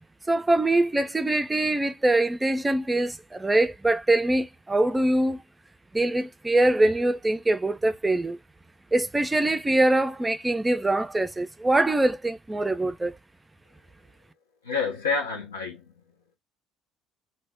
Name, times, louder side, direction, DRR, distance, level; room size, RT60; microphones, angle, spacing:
voice 1, 0.3-5.4 5.9-8.4 8.9-13.2, right 2 dB, 15° right, 0.4 m, -23 dB
voice 2, 14.6-16.4, left 4 dB, 90° left, 0.7 m, -29 dB
2.1 x 2.0 x 3.3 m
hypercardioid pair, 55°, 0 cm